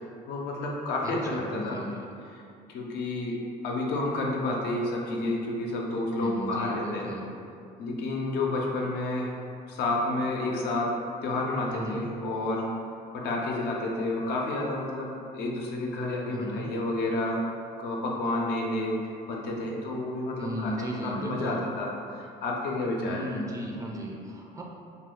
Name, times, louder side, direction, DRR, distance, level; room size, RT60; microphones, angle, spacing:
voice 1, 0.3-1.8 2.7-7.1 7.8-9.3 9.7-10.9 11.2-12.7 13.1-17.4 17.8-19.0 19.3-23.2, left 2 dB, 80° left, -1 dB, 0.5 m, -30 dB
voice 2, 1.0-2.0 6.2-7.3 11.7-12.1 16.3-16.7 20.4-21.6 23.1-24.6, equal, 20° right, -1 dB, 0.4 m, -35 dB
2.5 x 2.4 x 3.6 m, 2.5 s
cardioid pair, 110°, 17 cm